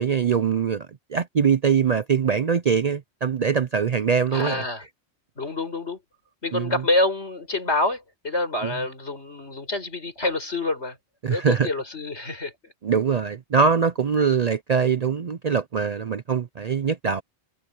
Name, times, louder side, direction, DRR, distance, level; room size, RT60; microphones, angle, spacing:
voice 1, 0.0-4.6 6.5-6.8 8.6-8.7 11.2-11.7 12.8-17.2, right 6 dB, 50° right, 0.5 m, -23 dB
voice 2, 4.3-4.8 5.4-6.0 6.4-11.0 11.3-12.7, left 2 dB, 75° left, 5.8 m, -27 dB
omnidirectional pair, 1.2 m